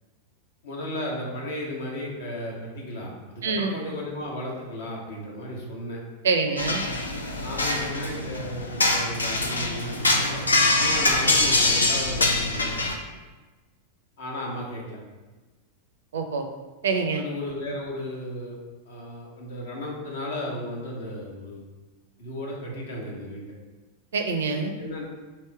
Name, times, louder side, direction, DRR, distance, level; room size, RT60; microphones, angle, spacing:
voice 1, 0.6-6.0 7.4-12.8 14.2-15.0 17.2-18.6 18.9-21.6 22.2-23.5 24.8-25.1, left 1 dB, 60° left, -2 dB, 1.0 m, -34 dB
voice 2, 3.4-3.8 6.2-6.8 16.1-16.5 16.8-17.3 24.1-24.7, right 4 dB, 65° right, 6 dB, 0.4 m, -25 dB
sound 1, 6.6-13.0, left 2 dB, 75° left, 0.4 m, -24 dB
3.0 x 2.9 x 4.5 m, 1.2 s
figure-of-eight pair, 90°, 0 cm